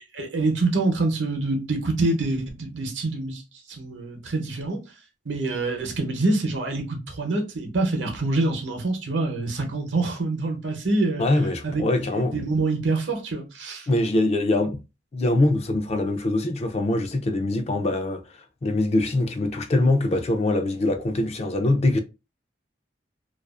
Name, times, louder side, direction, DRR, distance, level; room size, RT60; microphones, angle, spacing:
voice 1, 0.2-3.4 3.7-4.8 5.3-11.2 11.6-11.8 12.2-13.9, right 2 dB, 80° right, 0.8 m, -26 dB
voice 2, 11.2-12.4 13.9-14.8 15.1-22.0, left 2 dB, 35° left, 0.4 m, -23 dB
2.4 x 2.3 x 2.3 m
head